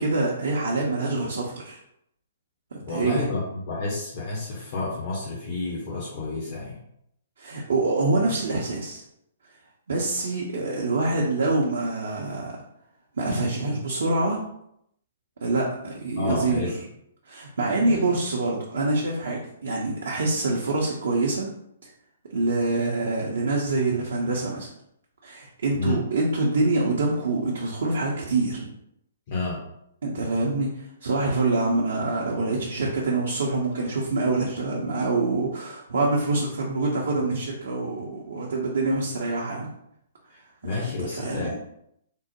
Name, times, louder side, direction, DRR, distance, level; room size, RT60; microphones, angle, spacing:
voice 1, 0.0-1.8 2.7-3.3 7.4-9.0 9.9-12.6 13.2-14.4 15.4-16.7 17.2-21.5 22.3-24.7 25.2-28.7 30.0-39.7 41.0-41.5, right 2 dB, 60° right, -3 dB, 0.5 m, -25 dB
voice 2, 2.9-6.8 16.2-16.8 17.8-18.2 25.7-26.0 29.3-29.6 40.3-41.5, left 3 dB, 40° left, -5 dB, 0.7 m, -30 dB
3.6 x 2.0 x 2.8 m, 0.76 s
figure-of-eight pair, 120°, 0 cm